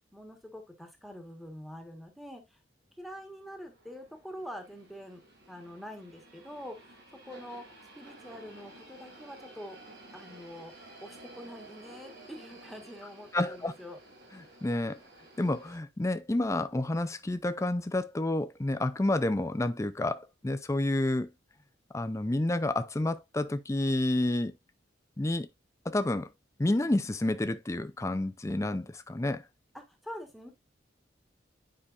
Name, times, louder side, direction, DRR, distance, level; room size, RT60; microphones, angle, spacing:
voice 1, 0.1-2.6 3.0-5.2 5.5-7.0 7.2-7.6 8.0-9.8 10.1-10.7 11.0-14.0 29.7-30.5, equal, ahead, 1.4 m, -45 dB
sound 1, 3.1-15.8, right 1 dB, 70° right, 4.6 m, -53 dB
voice 2, 13.3-13.7 14.6-15.0 15.4-21.3 21.9-24.5 25.2-25.5 25.9-26.3 26.6-29.4, left 1 dB, 15° left, 0.4 m, -29 dB
9.8 x 5.1 x 2.5 m
head